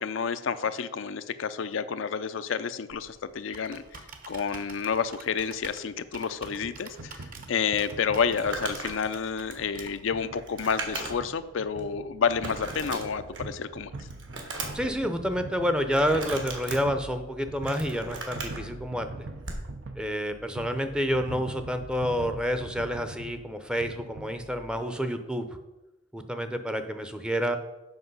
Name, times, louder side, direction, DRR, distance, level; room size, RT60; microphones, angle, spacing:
voice 1, 0.0-3.8 4.3-7.2 7.5-13.9, left 6 dB, 75° left, 11 dB, 0.5 m, -29 dB
Computer keyboard, 2.9-10.2, right 4 dB, 45° right, 1.0 m, -48 dB
sound 1, 6.4-24.8, right 2 dB, 85° right, 0.8 m, -43 dB
Crumpling crinkling, 8.2-11.4 11.8-11.9 12.4-13.6 13.9-14.9 15.9-16.8 17.4-18.6 19.4-19.7, right 3 dB, 65° right, 1.7 m, -37 dB
voice 2, 14.7-19.1 20.0-25.4 26.1-27.6, equal, 5° right, 8 dB, 0.6 m, -29 dB
8.0 x 5.9 x 5.4 m, 1.0 s
head